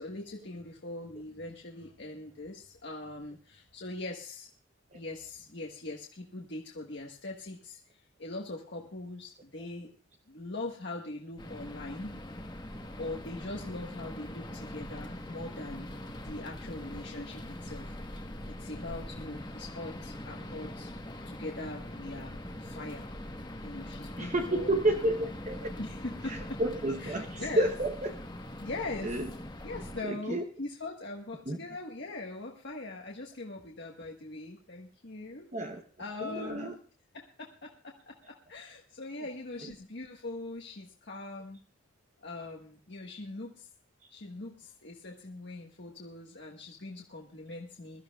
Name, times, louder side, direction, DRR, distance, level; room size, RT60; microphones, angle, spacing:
voice 1, 0.0-4.5 4.9-9.9 10.3-12.1 13.0-15.9 16.2-18.3 18.6-20.9 21.2-23.1 23.6-25.3 25.8-26.6 27.0-27.7 28.6-29.2 29.6-35.5 36.0-36.8 37.1-41.6 42.2-43.7 44.1-48.0, left 2 dB, 55° left, -1 dB, 1.4 m, -41 dB
sound 1, 11.4-30.0, left 1 dB, 20° left, 1.2 m, -42 dB
voice 2, 24.2-25.7 26.3-28.2 29.0-29.3 30.0-30.4 31.5-31.6 35.5-35.8 36.2-36.7 44.0-44.1, right 1 dB, 35° right, 4 dB, 0.8 m, -30 dB
22.5 x 13.0 x 2.3 m, 0.40 s
head